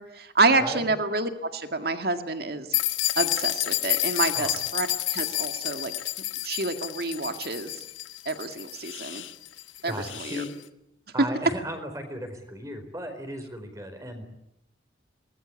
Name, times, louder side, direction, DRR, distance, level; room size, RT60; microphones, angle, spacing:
voice 1, 0.0-2.7 3.2-4.9 5.1-5.9 6.4-7.7 8.3-9.2 9.8-10.4, right 3 dB, 55° right, 7 dB, 2.0 m, -28 dB
sound 1, 2.7-10.5, left 15 dB, 85° left, 1.6 m, -30 dB
voice 2, 9.8-10.5 11.1-14.2, equal, 15° right, 7 dB, 4.6 m, -36 dB
24.5 x 20.0 x 9.9 m, 0.80 s
head